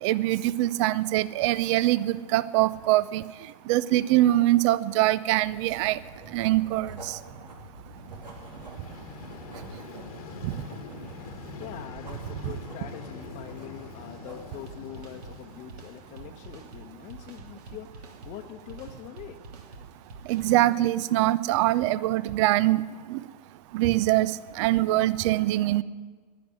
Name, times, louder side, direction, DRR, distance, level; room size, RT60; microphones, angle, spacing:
voice 1, 0.0-3.2 3.7-6.0 6.3-7.2 10.4-10.5 20.3-22.8 23.1-23.2 23.7-25.8, right 16 dB, 45° right, 19 dB, 0.5 m, -23 dB
Writing, 5.4-14.7, right 2 dB, 90° right, 2.9 m, -46 dB
Vehicle, 7.9-16.9, left 5 dB, 60° left, 1.3 m, -45 dB
voice 2, 11.3-19.5, left 10 dB, 35° left, 1 dB, 0.9 m, -44 dB
sound 1, 14.7-21.0, right 3 dB, 70° right, 2.4 m, -47 dB
11.5 x 10.5 x 8.8 m, 1.5 s
hypercardioid pair, 115°, 21 cm